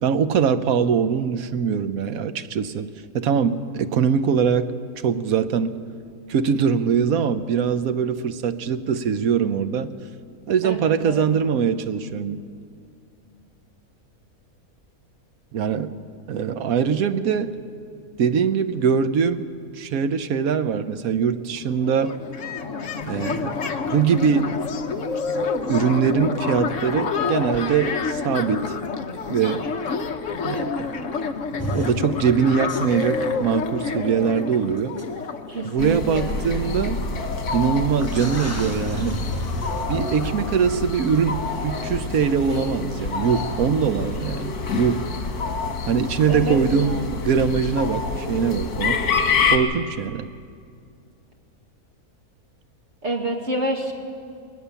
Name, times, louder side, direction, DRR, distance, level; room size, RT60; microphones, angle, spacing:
voice 1, 0.0-2.9 3.1-4.7 5.0-5.8 6.3-9.9 10.5-12.4 15.5-15.9 16.3-17.6 18.2-19.4 19.8-22.2 23.1-23.6 23.9-24.6 25.7-28.7 29.3-29.7 30.4-31.0 31.7-34.9 35.6-37.0 37.5-39.2 39.9-45.0 45.9-47.0 47.2-49.0 49.5-50.3, right 6 dB, 75° right, 11 dB, 1.2 m, -22 dB
voice 2, 10.6-11.3 35.5-36.4 46.3-47.1 53.0-53.9, right 1 dB, 50° right, 1 dB, 2.5 m, -28 dB
sound 1, 21.5-21.6 21.8-36.4, left 5 dB, 60° left, 1.3 m, -28 dB
sound 2, 31.6-32.0 32.7-33.0 34.4-34.5 35.0-35.1 36.2-36.3 37.5-37.6 38.0-40.3 42.4-42.7, equal, 10° left, 1.3 m, -31 dB
sound 3, 35.8-49.6, left 4 dB, 80° left, 2.0 m, -27 dB
21.0 x 19.0 x 7.0 m, 2.3 s
omnidirectional pair, 1.6 m